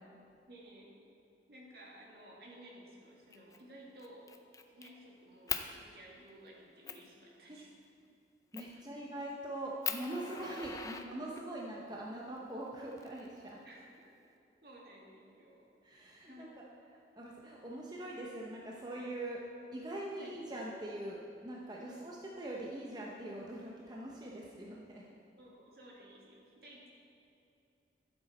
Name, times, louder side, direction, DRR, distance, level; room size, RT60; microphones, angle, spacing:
voice 1, 0.5-0.9 1.5-4.3 4.7-7.7 8.7-8.8 13.7-14.1 14.6-15.7 16.3-16.5 20.2-20.4 21.9-22.2 25.4-26.9, right 1 dB, 60° right, -3 dB, 2.1 m, -55 dB
Fire, 3.3-3.6 4.0-4.9 5.5-5.7 6.3-6.4 6.9-7.1 8.5-8.8 9.3-9.4 9.8-11.6 12.7-13.6, left 6 dB, 20° left, 0.4 m, -40 dB
voice 2, 8.5-13.6 15.8-16.6 17.2-19.4 19.7-25.1, right 1 dB, 25° right, -3 dB, 0.8 m, -43 dB
14.0 x 7.7 x 4.3 m, 2.7 s
head